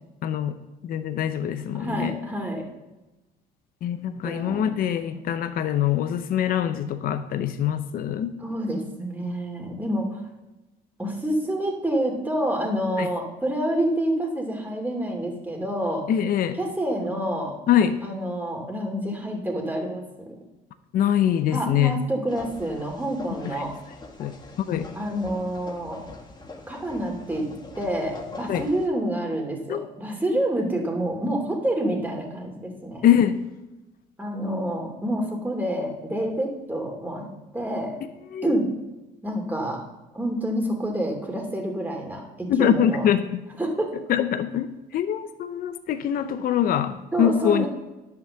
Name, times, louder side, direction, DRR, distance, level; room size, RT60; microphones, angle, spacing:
voice 1, 0.2-0.6 0.8-2.2 3.8-8.4 13.0-13.1 16.1-16.6 17.7-17.9 20.9-22.0 23.5-23.6 24.2-24.3 24.7-24.9 28.5-28.6 29.7-29.8 33.0-33.4 38.3-38.5 42.5-43.4 44.1-47.7, left 9 dB, 60° left, 10 dB, 0.7 m, -23 dB
voice 2, 1.7-2.7 4.2-4.7 8.4-10.2 11.0-16.1 16.6-17.6 18.0-20.1 21.5-23.7 24.9-26.0 26.7-27.5 27.8-33.0 34.2-37.3 37.5-38.0 38.4-38.7 39.2-39.8 40.1-43.1 43.6-43.9 47.1-47.7, right 1 dB, 10° right, 1 dB, 2.7 m, -28 dB
sound 1, 22.3-28.9, left 3 dB, 25° left, 1.7 m, -43 dB
10.5 x 6.0 x 7.0 m, 1.0 s
cardioid pair, 110°, 17 cm